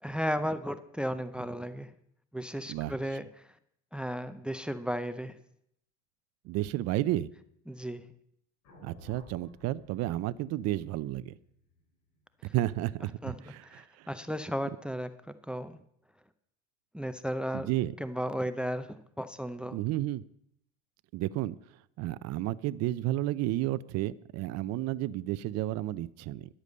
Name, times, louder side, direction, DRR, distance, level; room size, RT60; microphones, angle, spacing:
voice 1, 0.0-1.9 2.3-3.4 3.9-5.3 7.7-8.0 13.2-13.4 13.6-15.1 15.5-15.8 16.9-17.7 18.0-19.8, equal, 5° right, 12 dB, 0.6 m, -34 dB
voice 2, 6.5-7.3 8.8-11.3 12.5-14.1 17.5-17.9 19.7-20.2 21.1-21.6 22.0-26.6, right 15 dB, 45° right, 15 dB, 0.5 m, -32 dB
sound 1, 8.6-12.9, left 3 dB, 60° left, 4.2 m, -57 dB
11.0 x 8.1 x 6.7 m, 0.73 s
supercardioid pair, 100°, 37 cm